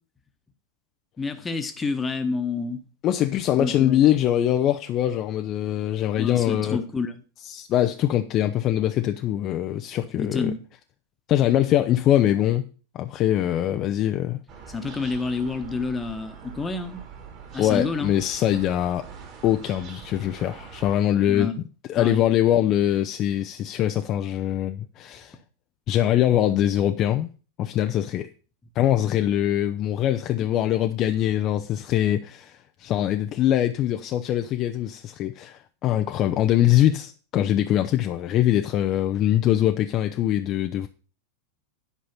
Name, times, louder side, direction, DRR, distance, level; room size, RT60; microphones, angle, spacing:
voice 1, 1.2-2.8 3.6-4.0 6.2-7.1 10.1-10.6 14.7-17.0 17.5-18.1 21.3-21.6 22.0-22.2, left 4 dB, 15° left, 1.2 m, -28 dB
voice 2, 3.0-6.8 7.4-10.5 11.3-12.7 12.9-14.4 17.6-19.0 19.4-21.5 21.9-25.4 25.9-27.3 27.6-28.3 28.8-40.9, left 12 dB, 35° left, 0.6 m, -23 dB
sound 1, 14.5-21.0, right 6 dB, 40° right, 2.4 m, -43 dB
10.5 x 5.5 x 5.6 m
figure-of-eight pair, 90°, 0 cm